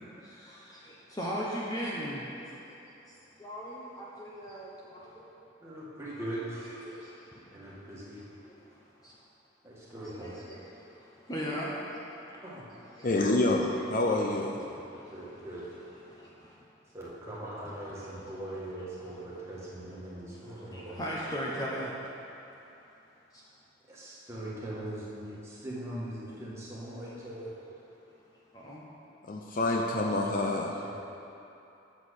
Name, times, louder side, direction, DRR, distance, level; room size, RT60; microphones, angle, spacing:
voice 1, 0.4-2.2 3.4-5.1 6.2-6.3 6.9-7.0 9.0-9.1 10.1-10.6 11.3-12.0 13.0-13.1 13.7-13.8 20.7-21.9 28.6-28.8, equal, 20° left, -5 dB, 0.9 m, -37 dB
voice 2, 5.6-6.9 7.5-8.2 9.6-10.5 12.4-12.6 15.1-15.7 16.9-21.1 23.9-27.5 30.8-30.9, right 1 dB, 15° right, -8 dB, 1.7 m, -40 dB
voice 3, 13.0-14.6 29.3-30.7, left 2 dB, 45° left, 0 dB, 0.5 m, -27 dB
7.5 x 6.1 x 6.4 m, 2.9 s
head